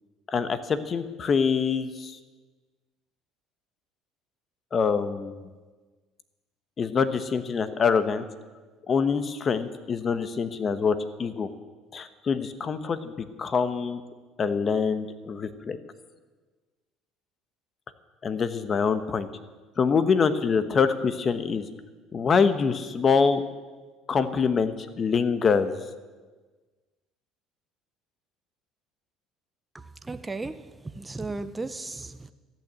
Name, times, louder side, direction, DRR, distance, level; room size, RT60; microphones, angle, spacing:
voice 1, 0.3-2.2 4.7-5.3 6.8-8.2 8.9-11.5 11.9-13.1 13.4-14.0 14.4-15.8 18.2-19.3 19.8-21.6 22.1-23.4 24.1-25.8, left 5 dB, 40° left, 1.1 m, -25 dB
voice 2, 29.7-30.7 30.9-32.3, right 3 dB, 15° right, 0.7 m, -35 dB
13.5 x 9.0 x 8.2 m
supercardioid pair, 85°, 0 cm